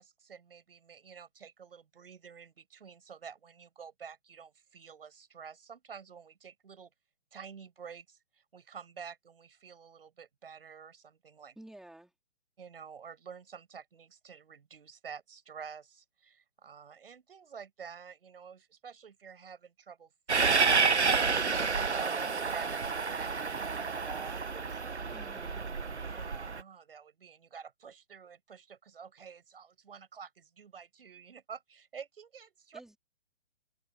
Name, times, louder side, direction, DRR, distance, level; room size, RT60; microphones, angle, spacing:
voice 1, 0.0-6.9 7.3-11.6 12.6-25.0 26.0-32.8, right 6 dB, 60° right, 7.9 m, -49 dB
voice 2, 11.6-12.1 25.1-25.7 32.7-33.0, right 1 dB, ahead, 4.0 m, -51 dB
Train, 20.3-26.6, right 4 dB, 85° right, 1.2 m, -29 dB
figure-of-eight pair, 135°, 33 cm